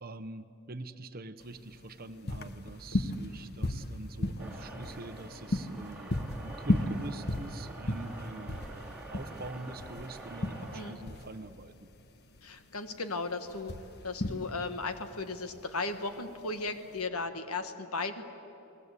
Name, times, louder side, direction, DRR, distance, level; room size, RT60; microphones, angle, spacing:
voice 1, 0.0-11.9, right 2 dB, 40° right, 11 dB, 1.0 m, -45 dB
sound 1, 1.4-17.1, left 1 dB, 45° left, 1.2 m, -36 dB
sound 2, 4.4-11.0, right 2 dB, 5° right, 3.5 m, -46 dB
voice 2, 12.4-13.7 14.0-18.2, left 3 dB, 75° left, 9 dB, 1.6 m, -36 dB
29.5 x 19.5 x 8.4 m, 2.9 s
head